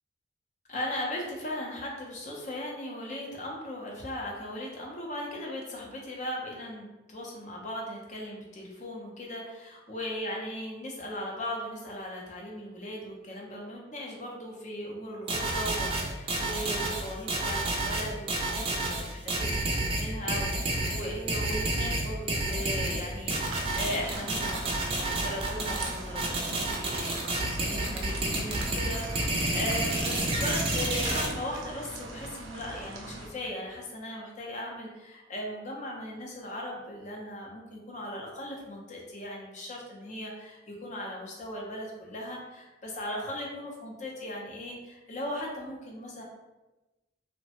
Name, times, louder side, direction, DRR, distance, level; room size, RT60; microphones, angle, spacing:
voice 1, 0.7-46.2, left 1 dB, 35° left, -2 dB, 0.5 m, -38 dB
sound 1, 15.3-31.3, right 2 dB, 30° right, 0.4 m, -30 dB
sound 2, 23.5-33.3, right 2 dB, 85° right, 0.4 m, -42 dB
3.1 x 2.1 x 2.8 m, 1.1 s
head